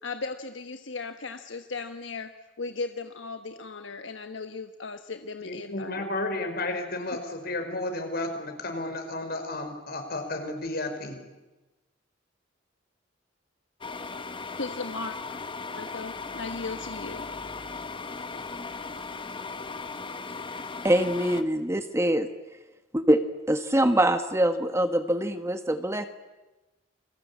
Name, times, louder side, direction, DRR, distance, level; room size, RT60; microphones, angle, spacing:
voice 1, 0.0-2.3 2.6-6.0 7.1-7.2 14.6-15.2 15.8-17.3, left 3 dB, 70° left, 7 dB, 1.2 m, -36 dB
voice 2, 5.4-11.2, left 2 dB, 55° left, 6 dB, 5.0 m, -32 dB
sound 1, 13.8-21.4, left 4 dB, 25° left, 1.2 m, -37 dB
voice 3, 20.8-22.3 22.9-23.2 23.5-26.1, right 1 dB, 15° right, 9 dB, 1.3 m, -24 dB
29.5 x 22.5 x 8.5 m, 1.1 s
head